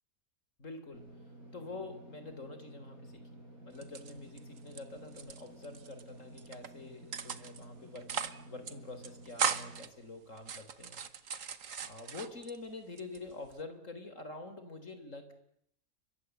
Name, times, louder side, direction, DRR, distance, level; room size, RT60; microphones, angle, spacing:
voice 1, 0.6-1.1 1.5-3.4 3.7-8.1 8.5-11.1 11.4-11.5 11.9-15.3, left 3 dB, 60° left, 9 dB, 4.1 m, -46 dB
Engine / Mechanisms, 0.9-9.9, right 1 dB, 90° right, 8.2 m, -52 dB
sound 1, 3.7-4.8 5.1-6.0 6.4-6.7 7.1-7.6 7.9-8.4 8.6-8.7 9.0-9.9 10.4-12.6 13.0-13.6, right 7 dB, 65° right, 1.6 m, -37 dB
29.5 x 24.0 x 8.0 m, 0.74 s
omnidirectional pair, 1.5 m